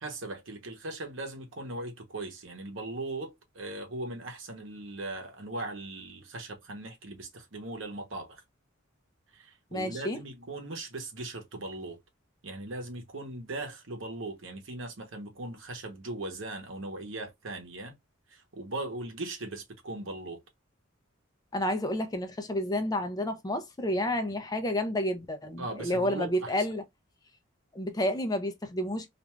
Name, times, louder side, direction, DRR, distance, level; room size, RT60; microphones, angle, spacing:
voice 1, 0.0-8.4 9.3-12.0 12.4-18.0 18.3-20.4 25.6-26.5, right 2 dB, 75° right, 0.9 m, -39 dB
voice 2, 9.7-10.2 21.5-26.8 27.7-29.1, left 1 dB, 20° left, 0.5 m, -30 dB
2.5 x 2.3 x 3.0 m
head